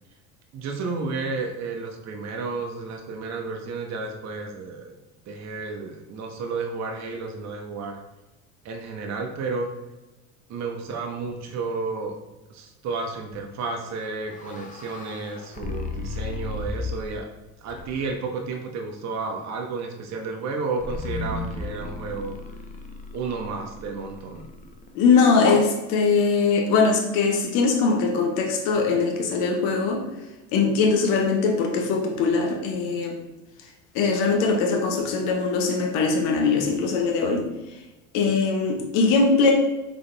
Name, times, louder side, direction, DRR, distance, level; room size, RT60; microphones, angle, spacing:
voice 1, 0.5-5.0 5.3-8.0 8.6-9.7 10.5-12.2 12.5-17.3 17.6-22.4 23.1-24.5, right 4 dB, 40° right, 2 dB, 0.9 m, -32 dB
sound 1, 13.9-17.2 17.7-18.2 20.8-24.9, left 3 dB, 20° left, 0.5 m, -35 dB
voice 2, 24.9-30.1 30.5-33.2 33.9-37.5 38.1-39.5, left 4 dB, 65° left, 3 dB, 1.1 m, -21 dB
3.9 x 3.8 x 3.4 m, 1.1 s
hypercardioid pair, 80°, 43 cm